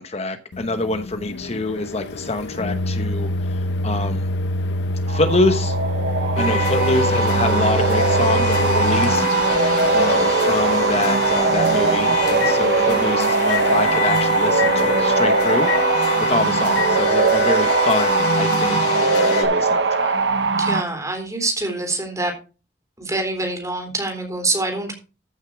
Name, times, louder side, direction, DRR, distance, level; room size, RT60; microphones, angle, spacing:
voice 1, 0.0-4.3 5.1-5.8 6.3-9.2 9.9-15.7 16.3-20.1, left 2 dB, 35° left, 8 dB, 1.0 m, -25 dB
Microwave oven, 0.5-13.1 13.5-13.7 14.6-14.7 15.7-15.8 16.8-16.9, left 1 dB, 85° left, 0.8 m, -27 dB
sound 1, 5.1-20.8, right 4 dB, 80° right, 1.0 m, -21 dB
sound 2, 6.4-19.4, left 1 dB, 65° left, 4.6 m, -24 dB
voice 2, 20.6-22.3 23.0-24.9, right 2 dB, 20° right, 4 dB, 3.7 m, -25 dB
14.5 x 6.6 x 4.7 m, 0.33 s
head